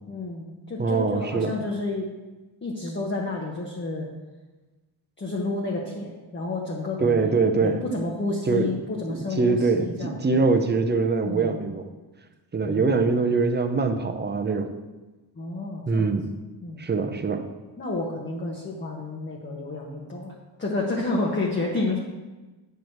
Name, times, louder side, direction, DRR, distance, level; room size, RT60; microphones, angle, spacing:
voice 1, 0.1-2.1 2.6-4.1 5.2-10.4 11.2-11.6 12.6-13.1 15.4-16.1 16.6-16.8 17.8-20.3 20.6-22.0, left 2 dB, 25° left, -2 dB, 0.9 m, -30 dB
voice 2, 0.8-1.6 7.0-7.8 8.5-8.7 9.3-11.9 12.5-14.7 15.9-16.3 16.8-17.5, right 4 dB, 25° right, 7 dB, 0.5 m, -23 dB
8.8 x 4.6 x 6.5 m, 1.2 s
wide cardioid pair, 180°, 45 cm